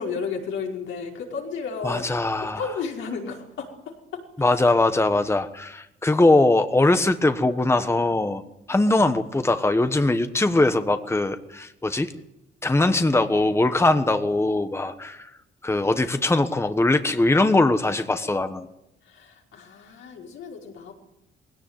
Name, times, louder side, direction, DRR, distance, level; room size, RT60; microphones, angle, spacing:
voice 1, 0.0-2.1 2.4-3.7 4.1-4.2 19.1-20.9, left 5 dB, 80° left, 0 dB, 5.5 m, -33 dB
voice 2, 1.8-2.8 4.4-8.4 8.7-12.1 12.6-15.3 15.6-18.7, left 2 dB, 15° left, 9 dB, 1.3 m, -21 dB
20.0 x 17.0 x 9.3 m, 0.87 s
cardioid pair, 90°, 20 cm